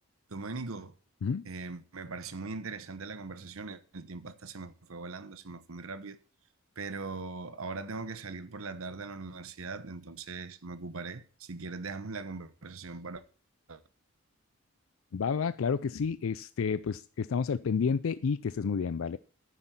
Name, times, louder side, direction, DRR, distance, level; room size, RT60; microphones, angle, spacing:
voice 1, 0.3-0.9 1.4-6.2 6.8-13.2 13.7-13.8, right 3 dB, 70° right, 1.0 m, -40 dB
voice 2, 15.1-19.2, left 6 dB, 65° left, 0.4 m, -30 dB
11.0 x 9.8 x 4.3 m
head